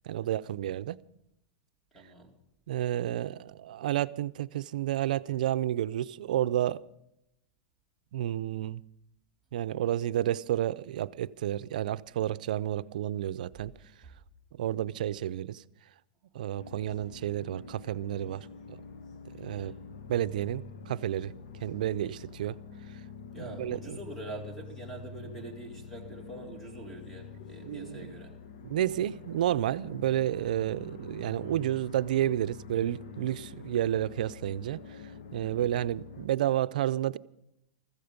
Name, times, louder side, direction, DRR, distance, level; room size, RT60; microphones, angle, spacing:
voice 1, 0.0-1.0 2.7-6.8 8.1-8.8 9.5-13.7 14.5-15.6 16.3-18.8 19.3-19.7 20.1-21.3 21.6-22.6 23.4-24.0 27.6-28.1 28.6-35.0 35.3-37.2, right 12 dB, 80° right, 0.5 m, -31 dB
voice 2, 1.9-2.3 13.8-14.1 19.5-19.8 23.3-28.3 35.4-35.7, right 1 dB, 5° left, 2.3 m, -45 dB
sound 1, 16.5-36.3, left 5 dB, 80° left, 1.3 m, -46 dB
15.0 x 14.5 x 5.1 m
supercardioid pair, 155°, 4 cm